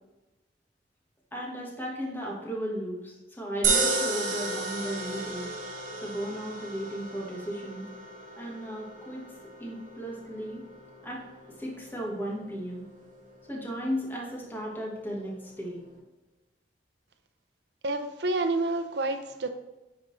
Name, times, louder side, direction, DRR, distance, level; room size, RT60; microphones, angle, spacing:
voice 1, 1.3-5.5 6.0-7.8 8.3-9.3 9.6-10.6 11.0-11.2 11.6-12.8 13.5-15.8, equal, 10° left, -3 dB, 1.3 m, -35 dB
sound 1, 3.6-16.0, right 3 dB, 45° right, 1.0 m, -35 dB
voice 2, 17.8-19.5, right 2 dB, 70° right, 7 dB, 0.6 m, -28 dB
9.2 x 3.8 x 3.2 m, 1.1 s
head